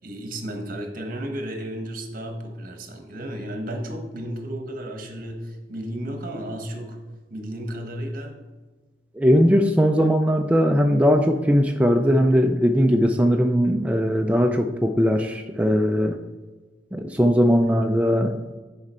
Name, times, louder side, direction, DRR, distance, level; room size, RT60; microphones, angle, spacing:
voice 1, 0.0-7.0 7.3-8.4, right 1 dB, 55° right, 4 dB, 1.3 m, -33 dB
voice 2, 9.2-16.2 16.9-18.6, equal, 10° right, 4 dB, 0.3 m, -19 dB
10.0 x 4.9 x 4.3 m, 1.3 s
head